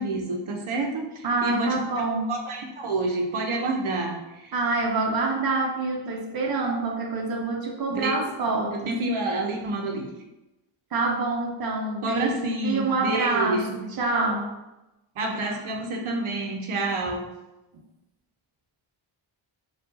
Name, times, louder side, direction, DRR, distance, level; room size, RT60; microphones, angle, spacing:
voice 1, 0.0-1.8 2.3-4.5 7.9-8.1 8.7-10.1 12.0-13.8 15.2-17.2, right 2 dB, 80° right, 1 dB, 0.8 m, -28 dB
voice 2, 1.2-2.4 4.5-9.0 10.9-12.3 12.6-14.5, right 3 dB, 50° right, 0 dB, 0.7 m, -26 dB
4.5 x 2.4 x 4.0 m, 0.98 s
wide cardioid pair, 155°, 48 cm